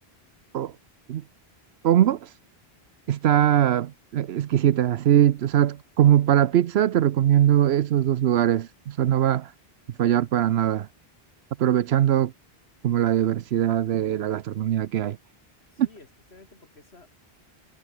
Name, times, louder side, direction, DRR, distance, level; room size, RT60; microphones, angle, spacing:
voice 1, 1.8-2.3 3.1-9.5 10.0-10.9 11.6-12.3 12.8-15.2 15.8-15.9, right 11 dB, 80° right, 0.9 m, -21 dB
voice 2, 15.7-17.1, left 3 dB, 85° left, 3.4 m, -52 dB
omnidirectional pair, 1.0 m